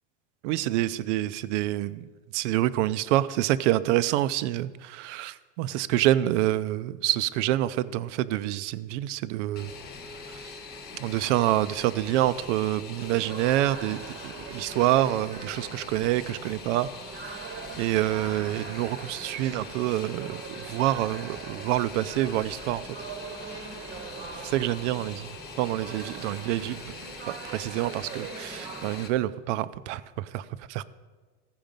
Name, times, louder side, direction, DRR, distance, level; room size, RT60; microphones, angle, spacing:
voice 1, 0.4-2.1 2.3-9.7 11.0-16.9 17.8-20.4 20.7-22.8 24.4-25.3 25.6-26.9 27.5-30.4 30.7-30.8, right 14 dB, 85° right, 15 dB, 0.5 m, -27 dB
Fixed-wing aircraft airplane, 9.6-29.1, left 4 dB, 30° left, 1.1 m, -43 dB
sound 1, 13.0-29.1, right 6 dB, 35° right, 0.8 m, -42 dB
15.5 x 5.1 x 5.2 m, 1.4 s
supercardioid pair, 150°, 35 cm